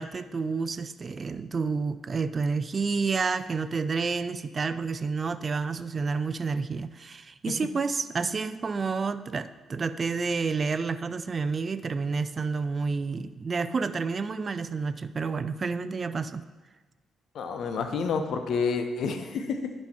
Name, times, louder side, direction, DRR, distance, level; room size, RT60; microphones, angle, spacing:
voice 1, 0.0-16.4, right 4 dB, 40° right, 13 dB, 0.4 m, -29 dB
voice 2, 17.3-19.7, left 5 dB, 60° left, 7 dB, 0.8 m, -29 dB
10.5 x 5.5 x 4.5 m, 1.3 s
figure-of-eight pair, 40°, 0 cm